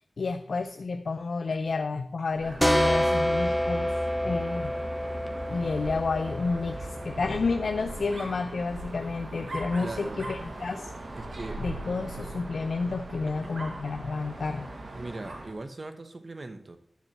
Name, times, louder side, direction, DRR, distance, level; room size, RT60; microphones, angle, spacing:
voice 1, 0.2-4.7 5.5-10.9 11.6-14.7, left 4 dB, 85° left, 8 dB, 0.5 m, -30 dB
Dog, 2.3-15.6, right 2 dB, 75° right, 1.8 m, -40 dB
sound 1, 2.6-8.1, equal, ahead, 0.9 m, -28 dB
voice 2, 9.8-10.2 11.2-11.6 13.4-13.5 14.9-16.8, right 2 dB, 55° right, 8 dB, 1.0 m, -39 dB
10.5 x 4.5 x 7.6 m, 0.68 s
wide cardioid pair, 55°, 0 cm